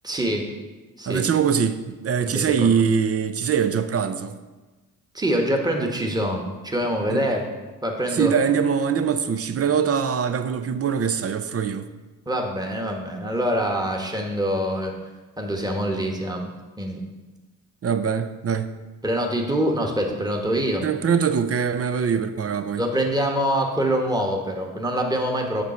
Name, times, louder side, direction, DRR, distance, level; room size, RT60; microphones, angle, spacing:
voice 1, 0.0-0.5 1.0-1.2 2.2-2.7 5.1-7.5 7.8-8.3 12.3-14.9 15.4-16.5 16.8-17.0 19.0-20.8 22.8-25.6, equal, 10° right, 1.4 m, -25 dB
voice 2, 1.1-4.4 7.1-7.2 8.1-11.9 17.8-18.7 20.8-22.8, right 7 dB, 35° right, 0.6 m, -23 dB
6.8 x 5.3 x 4.4 m
supercardioid pair, 50°, 40 cm